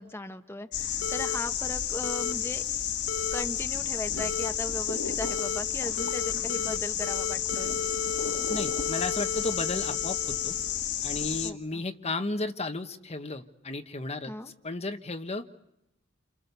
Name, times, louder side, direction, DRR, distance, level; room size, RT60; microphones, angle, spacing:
voice 1, 0.0-2.6 3.3-7.8 11.4-11.8 14.3-14.5, left 1 dB, 10° left, 6 dB, 1.3 m, -38 dB
sound 1, 0.7-11.5, left 9 dB, 60° left, 1.7 m, -31 dB
sound 2, 1.0-1.4 2.0-2.3 3.1-3.4 4.2-4.5 5.2-5.6 6.0-6.8 7.0-10.8, left 4 dB, 75° left, 1.2 m, -35 dB
voice 2, 8.5-10.6 11.0-14.3 14.6-15.5, left 2 dB, 30° left, 6 dB, 1.2 m, -34 dB
29.5 x 26.5 x 6.9 m, 0.85 s
head